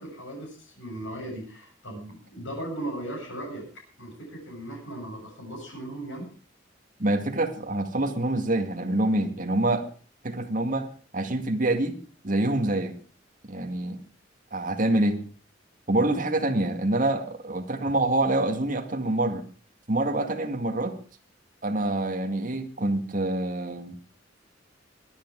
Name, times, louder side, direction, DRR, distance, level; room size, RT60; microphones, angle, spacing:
voice 1, 0.0-3.7 4.0-6.3, right 1 dB, 80° left, 0 dB, 7.7 m, -37 dB
voice 2, 7.0-9.9 10.2-12.0 12.2-12.9 13.5-14.0 14.5-15.2 15.9-19.4 19.9-21.0 21.6-24.0, right 2 dB, 45° right, 6 dB, 2.1 m, -26 dB
22.5 x 10.0 x 4.7 m, 0.39 s
head